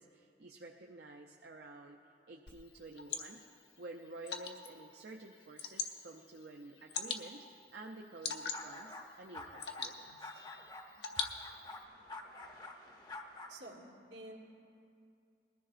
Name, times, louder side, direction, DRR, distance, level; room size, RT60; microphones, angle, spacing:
voice 1, 0.0-3.4 3.8-7.5 7.7-10.3, right 2 dB, 65° right, 0 dB, 0.5 m, -51 dB
Water / Drip, 2.5-11.8, left 6 dB, 75° left, 0.9 m, -44 dB
sound 1, 8.5-9.1 9.3-9.9 10.2-13.6, left 2 dB, 20° left, 0.7 m, -48 dB
voice 2, 13.5-14.4, right 1 dB, 85° right, -2 dB, 1.9 m, -50 dB
20.5 x 14.0 x 2.5 m, 2.5 s
head